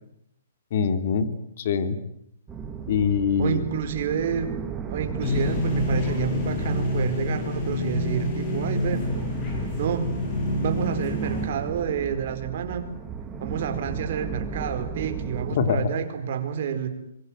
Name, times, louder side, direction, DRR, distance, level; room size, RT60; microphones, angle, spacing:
voice 1, 0.7-1.3 1.6-2.0 2.9-3.6 15.5-15.9, left 6 dB, 40° left, 10 dB, 2.8 m, -23 dB
sound 1, 2.5-15.5, right 6 dB, 10° right, 1.9 m, -36 dB
voice 2, 3.4-4.6 4.9-9.1 9.8-10.2 10.6-12.9 13.4-16.9, right 8 dB, 40° right, 7 dB, 4.7 m, -29 dB
sound 2, 5.2-11.5, left 1 dB, 20° left, 7.1 m, -27 dB
26.0 x 23.0 x 9.4 m, 0.76 s
hypercardioid pair, 170°, 0 cm